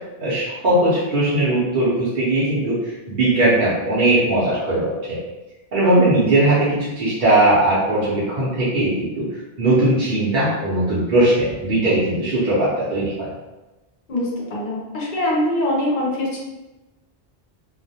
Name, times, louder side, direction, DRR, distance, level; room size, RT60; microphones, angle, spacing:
voice 1, 0.2-2.8 3.1-5.2 5.7-9.3 9.6-13.3, right 1 dB, 55° right, -9 dB, 0.8 m, -19 dB
voice 2, 14.1-16.4, left 1 dB, 60° left, -3 dB, 0.7 m, -23 dB
2.3 x 2.1 x 2.6 m, 1.1 s
omnidirectional pair, 1.0 m